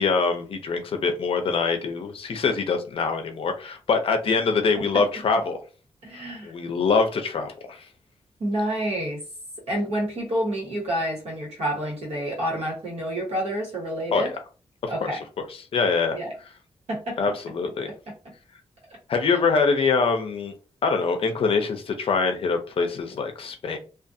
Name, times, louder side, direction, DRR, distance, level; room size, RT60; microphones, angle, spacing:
voice 1, 0.0-5.6 6.4-7.8 14.1-14.4 14.8-15.1 15.7-16.2 17.2-17.9 19.1-20.5 20.8-23.8, left 4 dB, 60° left, 6 dB, 0.5 m, -24 dB
voice 2, 6.0-6.5 8.4-9.2 9.7-14.3 14.9-15.2 16.1-16.3 16.9-17.3 17.9-18.3, right 1 dB, 80° right, -2 dB, 1.2 m, -29 dB
2.4 x 2.3 x 2.6 m, 0.36 s
wide cardioid pair, 170°, 11 cm